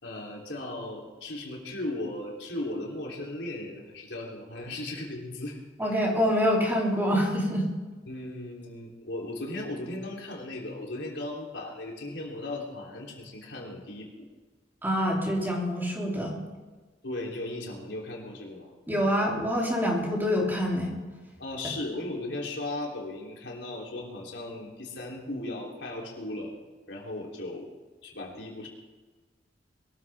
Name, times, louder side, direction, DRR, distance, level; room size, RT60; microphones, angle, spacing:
voice 1, 0.0-6.0 8.1-14.3 17.0-18.7 21.4-26.5 26.9-27.7 28.0-28.7, left 2 dB, 85° left, -2 dB, 3.7 m, -37 dB
voice 2, 5.8-7.7 14.8-16.4 18.9-21.0, equal, 10° right, -3 dB, 3.3 m, -26 dB
22.0 x 14.0 x 3.7 m, 1.3 s
head